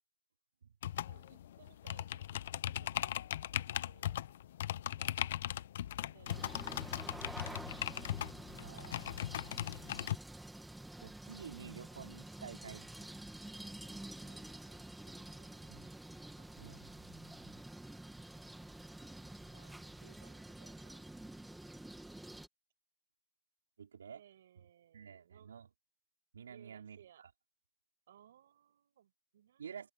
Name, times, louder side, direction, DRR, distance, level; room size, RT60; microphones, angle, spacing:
sound 1, 0.8-10.2, left 12 dB, 45° left, 0.9 m, -39 dB
voice 1, 1.0-3.1 3.6-4.2 5.0-5.6 6.0-6.6 14.2-15.9 16.4-16.8 19.5-21.0 24.1-25.5 26.5-27.2 28.1-29.9, right 10 dB, 50° right, 6.6 m, -64 dB
sound 2, 6.3-22.5, right 1 dB, ahead, 2.3 m, -49 dB
voice 2, 8.6-9.3 11.0-13.1 15.7-15.9 16.6-16.9 23.8-24.2 24.9-25.7 26.3-27.3 29.6-29.9, right 7 dB, 70° right, 4.2 m, -50 dB
hypercardioid pair, 160°, 0 cm